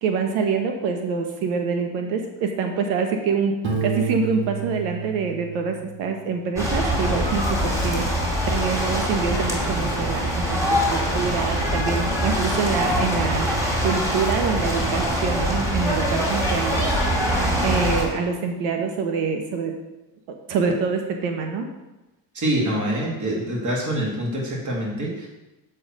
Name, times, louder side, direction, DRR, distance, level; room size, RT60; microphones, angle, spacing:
voice 1, 0.0-13.5 13.8-16.8 17.6-19.8 20.3-21.7, right 5 dB, 90° right, 4 dB, 1.1 m, -26 dB
Piano, 3.6-6.4, right 6 dB, 65° right, 2.2 m, -30 dB
sound 1, 6.6-18.0, equal, 5° right, 2.3 m, -23 dB
voice 2, 22.3-25.3, right 1 dB, 40° right, -3 dB, 2.9 m, -25 dB
7.7 x 4.7 x 6.1 m, 1.0 s
cardioid pair, 115°, 46 cm